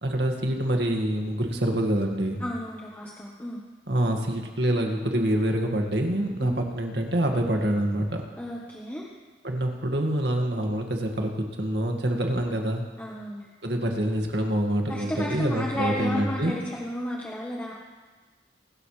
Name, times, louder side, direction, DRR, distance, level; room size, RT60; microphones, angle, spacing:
voice 1, 0.0-2.4 3.9-8.3 9.4-12.8 13.6-16.5, right 1 dB, 65° right, 2 dB, 2.0 m, -26 dB
voice 2, 2.4-3.6 6.4-6.6 8.4-9.1 10.5-10.6 13.0-13.5 14.9-17.7, equal, 10° left, -3 dB, 1.2 m, -33 dB
25.5 x 13.0 x 3.3 m, 1.4 s
head